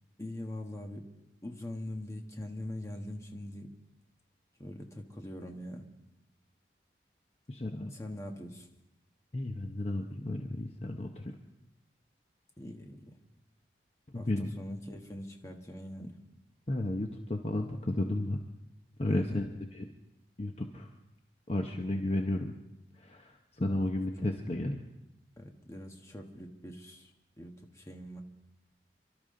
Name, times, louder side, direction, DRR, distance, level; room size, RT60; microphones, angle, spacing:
voice 1, 0.2-1.0 1.4-3.7 4.6-5.8 7.9-8.7 12.6-13.2 14.1-16.2 19.1-19.5 24.2-24.3 25.4-28.2, left 1 dB, 15° left, 2 dB, 1.4 m, -42 dB
voice 2, 7.5-7.9 9.3-11.4 14.1-14.5 16.7-18.4 19.0-19.9 20.4-20.9 21.5-22.5 22.9-24.8, left 1 dB, 35° left, 3 dB, 0.9 m, -33 dB
28.0 x 12.5 x 3.8 m, 0.92 s
head